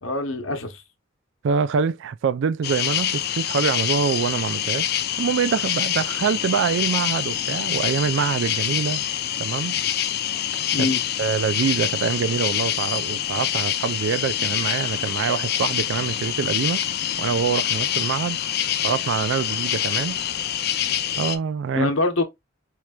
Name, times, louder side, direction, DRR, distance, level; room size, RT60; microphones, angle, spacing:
voice 1, 0.0-0.8 10.7-11.0 21.7-22.2, left 2 dB, 90° left, 1.0 m, -24 dB
voice 2, 1.4-4.9 5.2-9.0 9.4-9.8 10.8-10.9 11.2-16.8 17.2-18.4 18.8-20.2 21.2-21.9, right 6 dB, 65° right, 0.3 m, -25 dB
sound 1, 2.6-21.4, left 10 dB, 50° left, 0.5 m, -26 dB
4.5 x 3.2 x 2.3 m
head